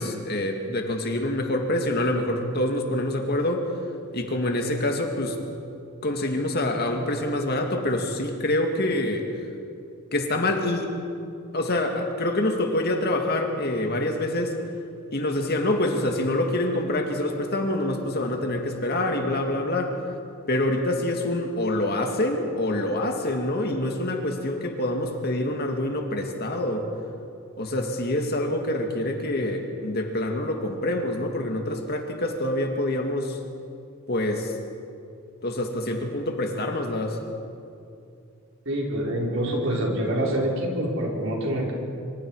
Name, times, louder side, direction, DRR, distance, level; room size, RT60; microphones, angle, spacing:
voice 1, 0.0-3.7 4.1-5.4 6.0-9.3 10.1-10.9 11.5-14.5 15.1-20.0 20.5-26.9 27.6-33.4 34.1-34.6 35.4-37.2, left 1 dB, 45° left, 3 dB, 2.2 m, -26 dB
voice 2, 38.6-41.7, right 1 dB, 60° right, -2 dB, 4.6 m, -26 dB
25.5 x 25.5 x 4.9 m, 2.5 s
head